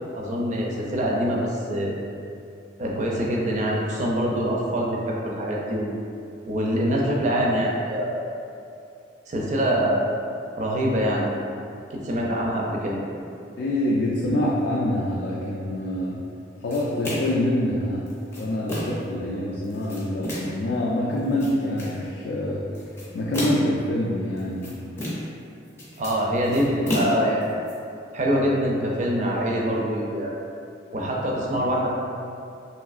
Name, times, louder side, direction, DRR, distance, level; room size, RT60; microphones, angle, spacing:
voice 1, 0.1-2.0 2.8-6.0 6.5-8.2 9.3-10.0 10.6-11.4 11.9-13.0 14.3-14.4 26.0-27.5 28.1-30.4 30.9-31.9, equal, 40° right, -2 dB, 0.4 m, -24 dB
voice 2, 13.6-16.2 16.6-22.6 23.1-24.8, left 1 dB, 60° left, -5 dB, 0.3 m, -26 dB
sound 1, 16.7-17.5 18.1-19.1 19.6-20.6 21.2-22.0 22.7-23.8 24.4-25.4 25.7-27.7, left 1 dB, 15° left, 0.5 m, -31 dB
3.1 x 2.7 x 2.4 m, 2.6 s
head